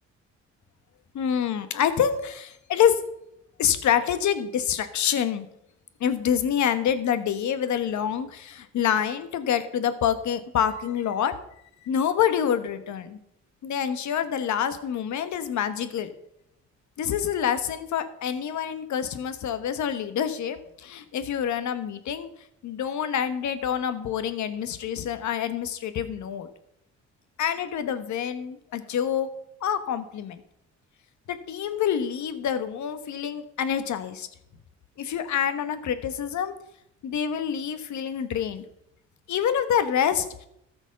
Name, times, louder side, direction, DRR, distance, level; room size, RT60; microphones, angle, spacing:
voice 1, 1.1-3.0 3.6-5.5 6.0-11.3 11.8-13.2 13.6-16.1 17.0-22.3 22.6-26.5 27.4-29.3 29.6-30.4 31.5-34.3 35.0-36.5 37.0-38.6 39.3-40.5, left 8 dB, 70° left, 11 dB, 1.2 m, -26 dB
14.0 x 6.0 x 5.8 m, 0.77 s
cardioid pair, 90°, 30 cm